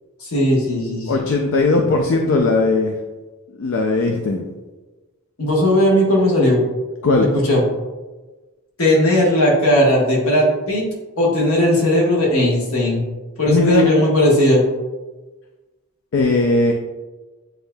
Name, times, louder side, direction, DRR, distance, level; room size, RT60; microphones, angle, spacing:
voice 1, 0.2-1.1 5.4-6.6 7.3-7.6 8.8-10.8 11.2-13.0 13.4-14.6, left 1 dB, 75° left, -3 dB, 1.3 m, -17 dB
voice 2, 1.1-2.9 3.6-4.5 7.0-7.3 13.5-13.9 16.1-16.7, left 3 dB, 60° left, 2 dB, 0.4 m, -18 dB
7.6 x 2.7 x 2.2 m, 1.2 s
head